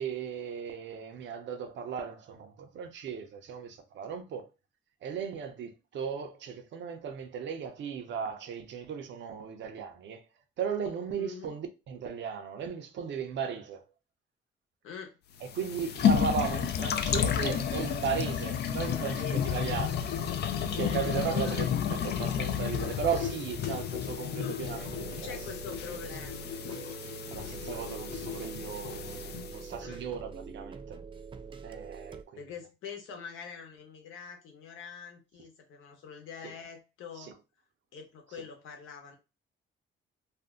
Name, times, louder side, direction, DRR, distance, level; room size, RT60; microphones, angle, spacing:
voice 1, 0.0-4.5 5.0-10.2 10.6-13.8 15.4-19.9 20.4-25.3 26.7-26.8 27.0-31.0 31.6-32.4 37.2-37.3, right 7 dB, 65° right, 0.7 m, -36 dB
voice 2, 11.2-11.6 14.8-15.2 18.9-19.7 20.9-21.0 21.3-21.6 25.2-26.5 29.8-30.0 32.3-37.3 37.9-39.2, left 6 dB, 80° left, 0.9 m, -44 dB
sound 1, 15.4-29.7, left 8 dB, 55° left, 0.4 m, -31 dB
sound 2, 24.6-32.2, right 5 dB, 25° right, 0.4 m, -44 dB
2.6 x 2.1 x 3.6 m
cardioid pair, 90°, 20 cm